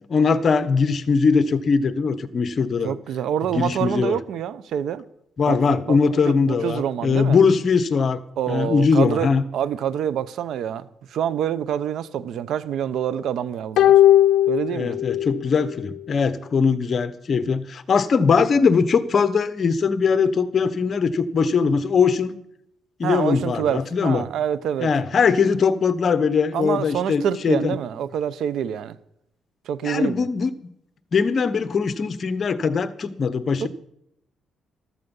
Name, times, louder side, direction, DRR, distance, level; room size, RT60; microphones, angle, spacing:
voice 1, 0.1-2.9 3.5-4.2 5.4-8.2 8.5-9.4 14.7-22.3 23.0-24.2 24.8-27.8 29.8-30.5 31.1-33.7, left 5 dB, 45° left, 1.1 m, -21 dB
voice 2, 2.8-5.0 5.5-7.4 8.4-9.3 9.5-13.9 14.5-15.0 23.0-24.9 26.5-29.0 29.7-30.2 33.6-33.7, right 9 dB, 75° right, 0.8 m, -26 dB
sound 1, 13.8-15.4 15.7-15.8, left 12 dB, 80° left, 0.6 m, -17 dB
14.5 x 13.0 x 5.5 m
cardioid pair, 90°, 0 cm